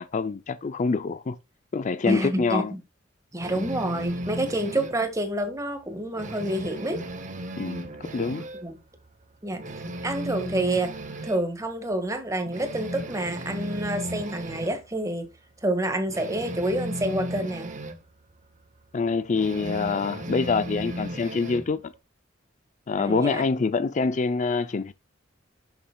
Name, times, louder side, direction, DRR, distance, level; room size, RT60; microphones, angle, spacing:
voice 1, 0.0-1.4 1.7-2.7 7.6-8.5 18.9-21.9 22.9-24.9, left 4 dB, 40° left, 0.4 m, -26 dB
voice 2, 2.0-2.8 3.3-7.0 8.6-8.8 9.4-9.6 10.0-10.9 11.2-15.3 15.6-17.7 23.0-23.4, right 1 dB, 15° right, 1.7 m, -28 dB
sound 1, 3.4-5.0 5.4-5.6 5.9-8.7 9.0-9.1 9.5-11.4 11.9-12.0 12.4-14.8 16.1-18.0 19.3-21.7, right 1 dB, 40° right, 1.4 m, -35 dB
10.5 x 7.1 x 2.3 m
head